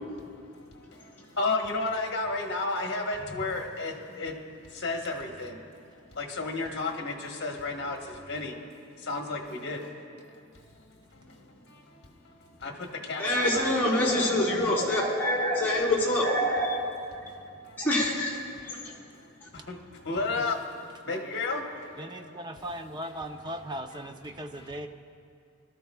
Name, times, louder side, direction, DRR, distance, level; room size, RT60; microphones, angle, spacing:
voice 1, 0.0-10.7 11.0-13.7 17.3-17.9 18.5-19.3 19.5-22.7 23.0-23.2 23.9-24.1 24.5-24.8, left 3 dB, 55° left, 2 dB, 1.3 m, -34 dB
voice 2, 13.2-16.8 17.8-18.4 18.6-18.8, left 1 dB, 10° left, -8 dB, 3.8 m, -25 dB
voice 3, 22.0-24.9, right 1 dB, 20° right, 6 dB, 0.6 m, -38 dB
23.0 x 13.0 x 2.3 m, 2.4 s
head